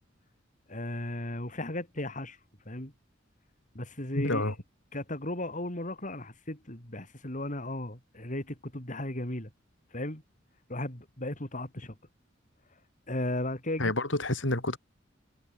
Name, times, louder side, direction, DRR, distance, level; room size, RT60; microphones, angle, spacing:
voice 1, 0.7-2.4 2.6-2.9 3.7-4.5 4.9-9.5 9.9-10.2 10.7-11.9 13.1-13.9, left 1 dB, 40° left, 5.1 m, -35 dB
voice 2, 4.2-4.5 13.8-14.8, left 1 dB, 75° left, 5.5 m, -28 dB
head